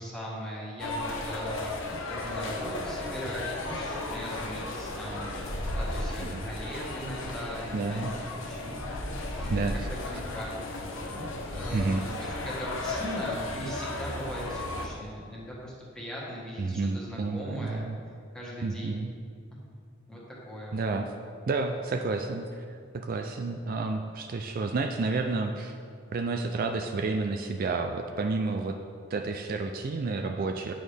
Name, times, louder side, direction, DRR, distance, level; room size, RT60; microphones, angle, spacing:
voice 1, 0.0-17.9 18.3-19.1 20.1-20.9, equal, 5° left, -6 dB, 1.6 m, -40 dB
sound 1, 0.8-14.9, left 2 dB, 85° left, 0.9 m, -35 dB
voice 2, 7.7-8.1 9.5-9.7 11.7-12.0 16.6-18.0 18.6-19.1 20.7-21.1 21.5-22.7 23.0-25.8 26.1-28.8 29.1-30.7, right 3 dB, 50° right, 4 dB, 0.4 m, -30 dB
9.2 x 6.2 x 3.4 m, 2.2 s
head